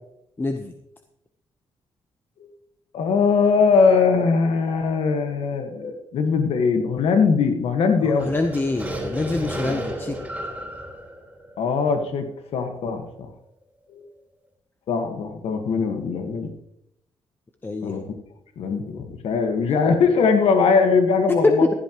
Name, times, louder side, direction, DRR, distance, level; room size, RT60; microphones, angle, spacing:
voice 1, 0.4-0.7 8.0-10.2 17.6-18.0 21.4-21.7, left 2 dB, 20° left, 6 dB, 0.9 m, -24 dB
voice 2, 2.9-8.3 11.6-12.3 12.5-13.3 13.9-14.0 14.9-16.5 17.8-18.0 18.6-21.6, left 5 dB, 80° left, 6 dB, 1.5 m, -21 dB
sound 1, 8.2-12.3, right 1 dB, 10° right, 3.9 m, -32 dB
15.5 x 11.5 x 3.0 m, 0.78 s
cardioid pair, 110°, 10 cm